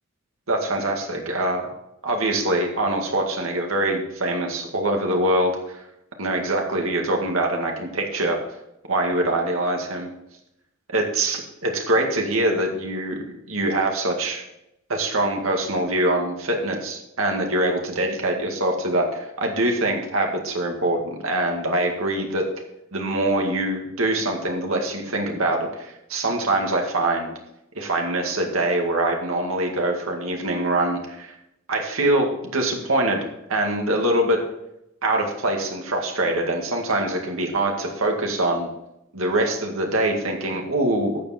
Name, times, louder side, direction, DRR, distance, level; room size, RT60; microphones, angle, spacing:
voice 1, 0.5-1.7 2.0-5.8 6.2-8.4 8.9-10.1 10.9-14.4 14.9-22.5 22.9-27.3 27.8-31.3 31.7-34.4 35.0-38.7 39.1-41.2, right 1 dB, 90° right, 2 dB, 2.0 m, -24 dB
12.0 x 7.4 x 4.3 m, 0.84 s
head